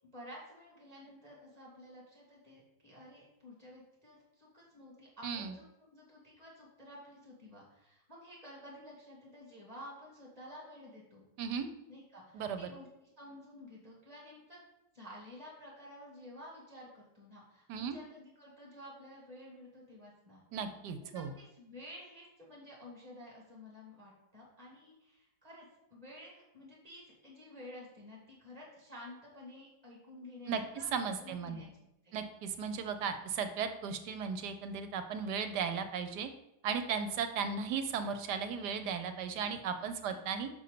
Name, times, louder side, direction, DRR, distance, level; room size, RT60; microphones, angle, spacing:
voice 1, 0.1-11.3 11.9-12.9 13.2-14.6 14.9-20.4 21.0-30.9 31.2-31.7 32.0-32.2 39.7-40.2, left 1 dB, 20° right, -4 dB, 2.6 m, -52 dB
voice 2, 5.2-5.5 11.4-11.7 12.3-12.7 17.7-18.0 20.5-21.3 30.5-30.6 30.9-31.6 32.1-36.3 36.6-40.5, right 6 dB, 80° right, 8 dB, 1.4 m, -36 dB
5.5 x 5.4 x 6.7 m, 0.89 s
omnidirectional pair, 1.8 m